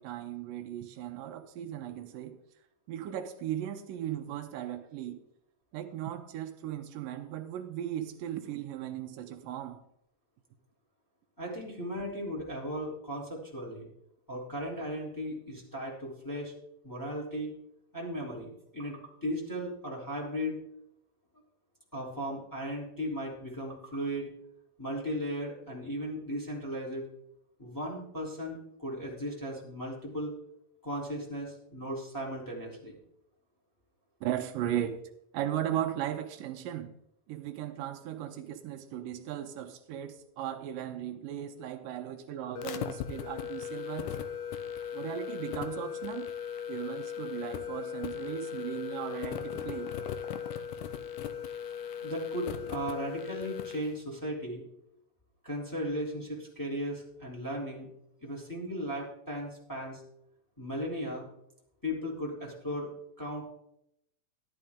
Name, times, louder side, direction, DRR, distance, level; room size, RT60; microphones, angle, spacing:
voice 1, 0.0-2.4 2.9-5.2 5.7-9.8 34.2-35.0 35.3-36.9 37.3-44.2 44.9-46.3 46.7-49.9, right 11 dB, 85° right, 2.5 m, -37 dB
voice 2, 11.4-13.9 14.3-16.5 16.8-17.5 17.9-20.6 21.9-24.3 24.8-27.1 27.6-30.3 30.8-33.0 52.0-54.6 55.4-57.9 58.2-60.0 60.6-61.2 61.8-62.9 63.2-63.4, equal, 5° left, 3.0 m, -36 dB
sound 1, 42.6-53.9, left 8 dB, 75° left, 2.3 m, -38 dB
12.5 x 12.0 x 3.7 m
omnidirectional pair, 3.8 m